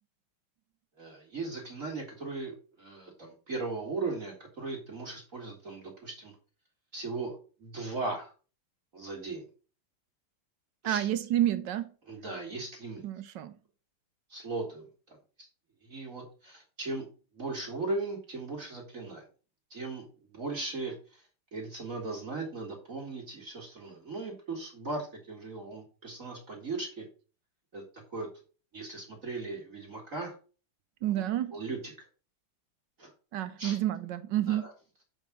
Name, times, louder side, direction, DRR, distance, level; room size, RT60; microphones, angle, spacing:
voice 1, 1.0-6.3 6.9-8.3 8.9-9.4 10.8-11.1 12.1-13.0 14.3-15.2 15.8-17.1 17.3-19.2 19.7-21.2 21.5-27.1 27.7-27.8 28.1-28.3 28.7-30.3 31.1-31.2 31.5-32.1 33.0-33.1 33.6-33.8 34.5-34.7, right 3 dB, 40° right, 2.1 m, -38 dB
voice 2, 10.8-11.9 13.0-13.5 31.0-31.5 33.3-34.7, right 12 dB, 70° right, 1.2 m, -29 dB
7.2 x 4.7 x 6.0 m
omnidirectional pair, 2.3 m